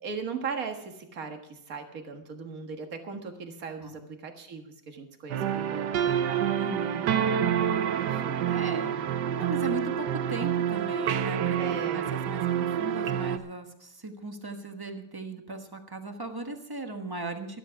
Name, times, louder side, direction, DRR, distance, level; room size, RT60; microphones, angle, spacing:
voice 1, 0.0-6.5 7.9-8.5 11.6-12.1, right 5 dB, 45° right, 5 dB, 1.9 m, -38 dB
sound 1, 5.3-13.4, right 9 dB, 65° right, 1.2 m, -28 dB
voice 2, 6.6-7.2 7.9-8.0 8.5-17.6, right 2 dB, 15° right, 5 dB, 0.9 m, -38 dB
13.0 x 12.5 x 5.7 m, 0.76 s
omnidirectional pair, 2.2 m